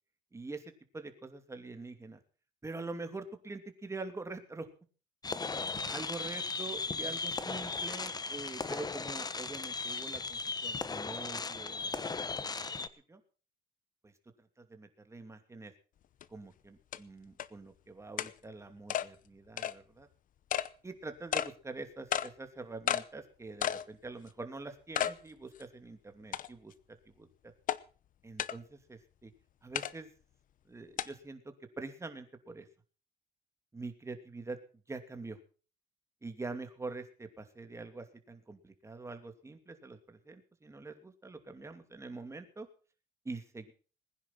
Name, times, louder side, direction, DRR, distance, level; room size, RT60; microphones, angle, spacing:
voice 1, 0.3-2.2 2.6-4.7 5.9-11.9 12.4-13.2 14.0-14.1 14.6-15.7 16.3-20.1 20.8-26.7 27.2-27.3 28.2-29.3 29.6-30.1 30.7-32.7 33.7-34.6 34.9-35.4 36.2-42.7 43.2-43.7, right 3 dB, 15° right, 7 dB, 2.8 m, -45 dB
sound 1, 5.2-12.9, left 4 dB, 25° left, 1.2 m, -37 dB
sound 2, 16.2-16.3 16.9-17.0 17.4-17.5 18.2-18.3 18.9-19.1 19.6-19.7 20.5-20.7 21.3-21.5 22.1-22.3 22.9-23.0 23.6-23.8 24.3-24.4 24.9-25.2 25.6-25.7 26.3-26.7 27.7-27.8 28.4-28.6 29.7-29.9 31.0-31.1, left 10 dB, 50° left, 0.9 m, -32 dB
20.0 x 10.5 x 5.9 m, 0.39 s
cardioid pair, 110°, 17 cm